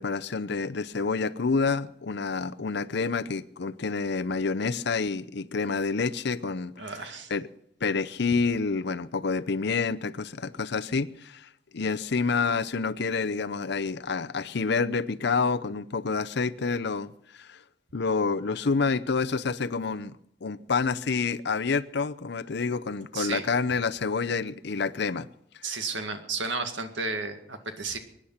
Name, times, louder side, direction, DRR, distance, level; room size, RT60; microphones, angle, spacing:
voice 1, 0.0-6.9 7.3-7.4 7.8-17.6 17.9-20.1 20.4-25.3, left 4 dB, 60° left, 0.6 m, -28 dB
voice 2, 6.8-7.3 23.1-23.5 25.6-28.0, right 4 dB, 75° right, 2.1 m, -33 dB
24.0 x 10.0 x 5.8 m
head